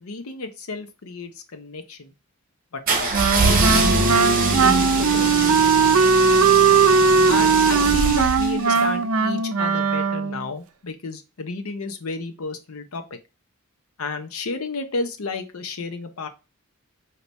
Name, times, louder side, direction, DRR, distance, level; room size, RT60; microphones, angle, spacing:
voice 1, 0.0-2.1 2.7-5.6 7.3-13.0 14.0-16.3, left 3 dB, 70° left, 7 dB, 0.7 m, -32 dB
sound 1, 2.9-8.8, right 3 dB, 40° right, 1.0 m, -23 dB
Wind instrument woodwind instrument, 3.1-10.4, right 5 dB, 75° right, 0.5 m, -19 dB
4.0 x 2.8 x 3.4 m, 0.29 s
head